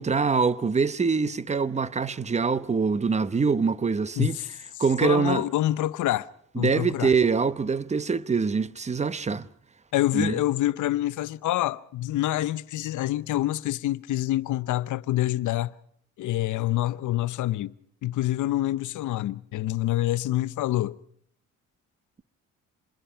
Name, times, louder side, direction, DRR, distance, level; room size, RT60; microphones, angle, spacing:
voice 1, 0.0-4.4 4.8-5.4 6.6-9.5 10.1-10.3, right 5 dB, 20° right, 0.9 m, -24 dB
voice 2, 4.2-4.5 5.0-6.3 6.5-7.1 9.9-15.7 16.2-17.7 18.0-21.0, left 14 dB, 75° left, 0.8 m, -26 dB
26.5 x 21.5 x 5.7 m
cardioid pair, 90°, 30 cm